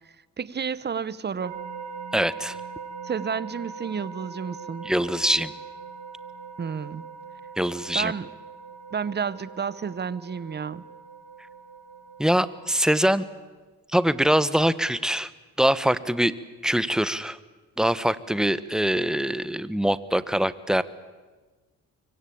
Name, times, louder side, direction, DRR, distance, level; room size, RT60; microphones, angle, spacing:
voice 1, 0.4-1.6 3.0-4.9 6.6-7.0 7.9-8.3 8.9-10.8, right 6 dB, 35° right, 19 dB, 1.0 m, -31 dB
sound 1, 1.4-12.9, right 5 dB, 85° right, 5.0 m, -41 dB
voice 2, 2.1-2.6 4.8-5.5 7.6-8.1 12.2-13.3 13.9-15.3 15.6-16.3 16.6-17.4 17.8-20.8, equal, ahead, 16 dB, 1.2 m, -23 dB
24.5 x 24.0 x 8.7 m, 1.3 s
cardioid pair, 90°, 30 cm